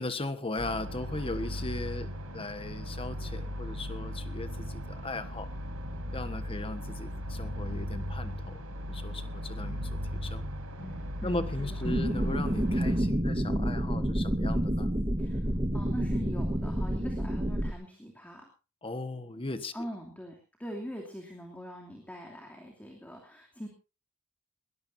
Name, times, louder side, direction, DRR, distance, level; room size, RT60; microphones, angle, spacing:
voice 1, 0.0-5.5 6.1-10.5 11.2-14.9 18.8-19.9, left 2 dB, 25° left, 10 dB, 1.4 m, -38 dB
sound 1, 0.6-13.0, equal, 75° right, 5.3 m, -37 dB
voice 2, 10.8-11.8 15.2-15.4 15.7-18.5 19.7-23.7, equal, 5° left, 1 dB, 2.8 m, -42 dB
sound 2, 11.8-17.7, equal, 20° right, 1.8 m, -29 dB
21.0 x 19.0 x 2.7 m, 0.32 s
head